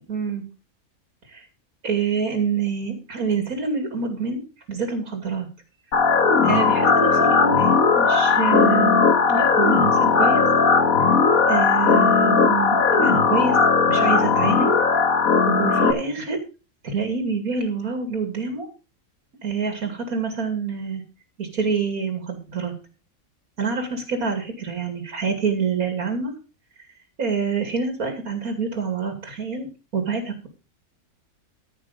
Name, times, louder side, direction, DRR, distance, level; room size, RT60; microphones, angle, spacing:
voice 1, 0.1-0.4 1.8-4.4 4.7-5.5 6.4-10.4 11.5-13.6 13.9-14.7 15.4-16.4 16.8-18.7 19.4-21.0 21.4-22.7 23.6-26.3 27.2-29.7 29.9-30.5, right 5 dB, 80° right, 5 dB, 3.0 m, -26 dB
sound 1, 5.9-15.9, left 5 dB, 75° left, 1.9 m, -18 dB
14.5 x 6.4 x 5.2 m, 0.32 s
omnidirectional pair, 1.5 m